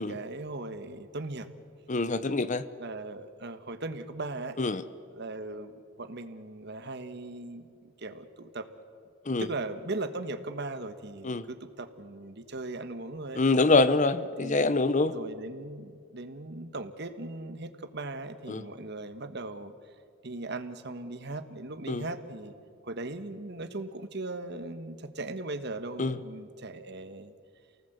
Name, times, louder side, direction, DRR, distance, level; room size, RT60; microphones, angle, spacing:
voice 1, 0.0-1.5 2.8-4.6 5.1-8.7 9.4-13.4 14.4-14.8 15.1-19.7 20.2-22.5 22.8-27.3, right 2 dB, 55° right, 10 dB, 1.4 m, -38 dB
voice 2, 1.9-2.6 4.6-4.8 9.3-9.5 11.2-11.5 13.4-15.1 18.5-18.6 21.9-22.0 26.0-26.1, left 3 dB, 35° left, 14 dB, 0.8 m, -25 dB
28.5 x 19.0 x 8.1 m, 2.3 s
head